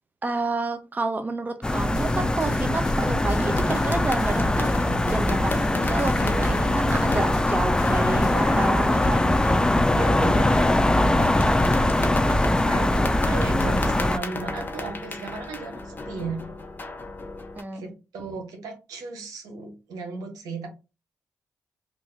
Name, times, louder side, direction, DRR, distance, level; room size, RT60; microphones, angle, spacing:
voice 1, 0.2-4.7 5.1-9.2 17.5-17.8, right 3 dB, 30° right, 7 dB, 0.6 m, -29 dB
sound 1, 1.6-14.2, left 1 dB, 15° left, 0.4 m, -22 dB
sound 2, 1.8-8.4, left 5 dB, 80° left, 0.4 m, -38 dB
sound 3, 3.4-17.6, left 2 dB, 30° left, 0.9 m, -34 dB
voice 2, 8.3-9.0 9.9-16.4 17.7-20.7, right 3 dB, 80° right, 3 dB, 1.0 m, -35 dB
3.0 x 2.5 x 3.6 m, 0.29 s
supercardioid pair, 50°, 6 cm